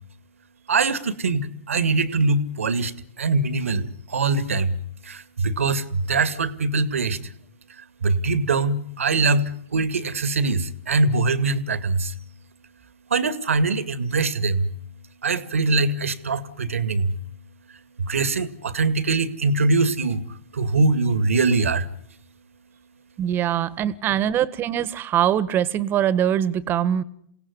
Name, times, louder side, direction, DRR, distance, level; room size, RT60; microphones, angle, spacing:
voice 1, 0.7-4.8 5.0-7.2 8.0-12.1 13.1-14.7 15.2-17.1 18.0-21.9, right 3 dB, 80° right, 14 dB, 2.2 m, -23 dB
voice 2, 23.2-27.0, right 10 dB, 30° right, 18 dB, 1.6 m, -22 dB
28.5 x 18.0 x 9.7 m, 0.71 s
hypercardioid pair, 110°, 7 cm